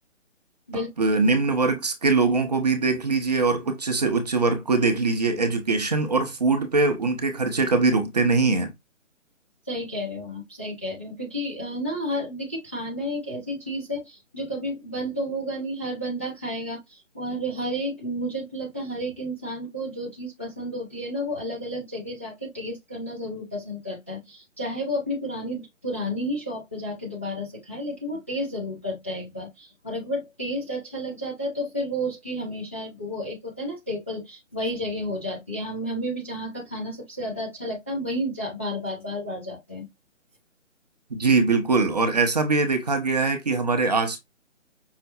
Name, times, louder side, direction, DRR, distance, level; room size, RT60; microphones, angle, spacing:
voice 1, 0.7-8.7 41.1-44.2, right 3 dB, 35° right, 0.6 m, -22 dB
voice 2, 9.7-39.8, equal, 10° left, 0.5 m, -31 dB
5.6 x 2.1 x 2.7 m
figure-of-eight pair, 150°, 38 cm